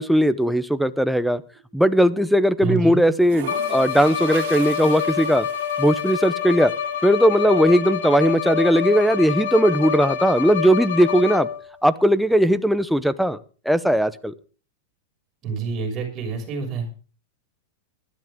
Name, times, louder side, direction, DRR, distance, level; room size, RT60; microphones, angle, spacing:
voice 1, 0.0-1.4 1.7-5.5 5.8-6.7 7.0-11.5 11.8-13.4 13.7-14.3, equal, ahead, 12 dB, 0.7 m, -18 dB
sound 1, 0.9-1.7 3.0-6.8, right 12 dB, 60° right, 1.8 m, -39 dB
voice 2, 2.6-3.0 15.4-17.0, right 5 dB, 30° right, 1 dB, 6.2 m, -27 dB
Bowed string instrument, 3.4-11.7, left 8 dB, 85° left, 2.8 m, -27 dB
19.5 x 12.5 x 3.7 m, 0.37 s
supercardioid pair, 150°, 0 cm